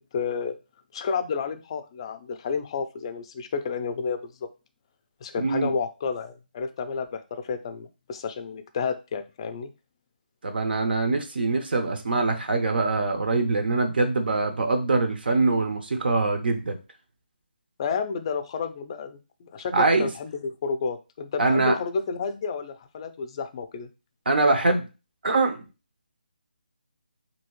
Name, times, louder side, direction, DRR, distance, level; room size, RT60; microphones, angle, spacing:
voice 1, 0.1-0.5 0.9-4.3 5.2-9.7 17.8-23.9, left 5 dB, 30° left, 9 dB, 0.4 m, -31 dB
voice 2, 5.4-5.7 10.4-16.8 19.7-20.1 21.4-21.8 24.3-24.9 25.2-25.6, right 3 dB, 70° right, 6 dB, 0.6 m, -23 dB
3.0 x 2.7 x 3.0 m, 0.30 s
figure-of-eight pair, 155°, 6 cm